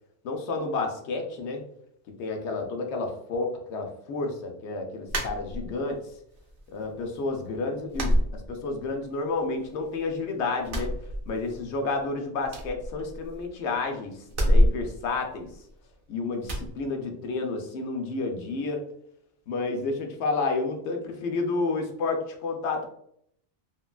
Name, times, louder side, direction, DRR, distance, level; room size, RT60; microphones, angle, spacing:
voice 1, 0.2-1.6 2.2-6.0 6.7-10.9 11.3-15.5 16.1-18.9 19.5-22.9, left 3 dB, 75° left, 3 dB, 0.9 m, -30 dB
sound 1, 5.1-6.0 6.4-7.1 7.3-7.5 7.9-9.1 9.3-10.2 10.6-11.7 12.0-12.1 12.4-13.6 14.3-15.9 16.4-16.7, equal, 55° right, 0.7 m, -27 dB
3.0 x 2.2 x 2.3 m, 0.70 s
omnidirectional pair, 1.2 m